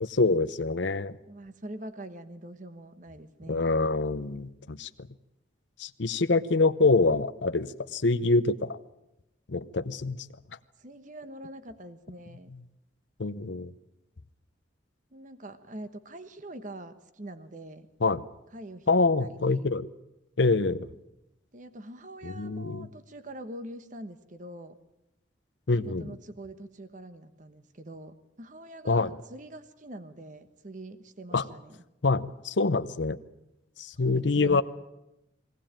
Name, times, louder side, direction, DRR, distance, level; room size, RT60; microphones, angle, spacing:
voice 1, 0.0-1.2 3.5-4.9 5.8-8.8 9.5-10.2 13.2-13.7 18.0-18.2 18.9-19.9 20.4-20.8 22.2-22.9 25.7-26.2 28.8-29.1 31.3-31.4 32.0-33.2 33.8-34.6, left 3 dB, 70° left, 12 dB, 0.8 m, -25 dB
voice 2, 1.3-3.7 10.8-12.5 15.1-17.9 18.5-19.7 21.5-24.8 25.8-31.8 34.1-34.6, right 1 dB, 40° right, 11 dB, 1.2 m, -44 dB
21.0 x 17.5 x 8.9 m, 0.89 s
head